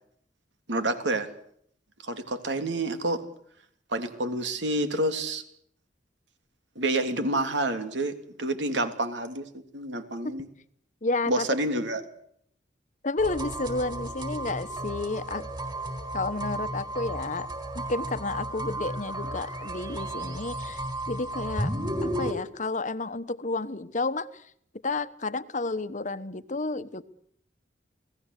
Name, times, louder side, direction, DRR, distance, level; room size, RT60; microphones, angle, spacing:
voice 1, 0.7-1.3 2.0-3.2 3.9-5.4 6.7-10.5 11.3-12.0, right 1 dB, 85° right, 8 dB, 3.1 m, -28 dB
voice 2, 11.0-11.5 13.0-15.4 16.1-17.5 17.7-21.7 22.0-24.5 24.8-27.0, left 3 dB, 45° left, 13 dB, 1.2 m, -31 dB
sound 1, 13.2-22.3, right 1 dB, 25° right, 4.3 m, -33 dB
29.0 x 18.0 x 8.3 m, 0.67 s
head